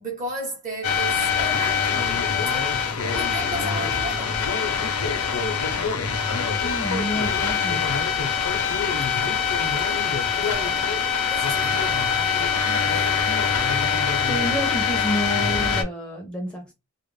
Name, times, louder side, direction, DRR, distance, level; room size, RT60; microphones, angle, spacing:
voice 1, 0.0-4.6 8.6-8.7 9.1-9.5 9.8-10.9 11.3-11.9 12.9-13.0, right 2 dB, 35° right, 0.8 m, -35 dB
sound 1, 0.8-15.8, left 6 dB, 85° left, 0.5 m, -23 dB
voice 2, 6.6-7.9 14.2-16.7, equal, 5° left, 0.5 m, -29 dB
2.3 x 2.0 x 3.0 m
head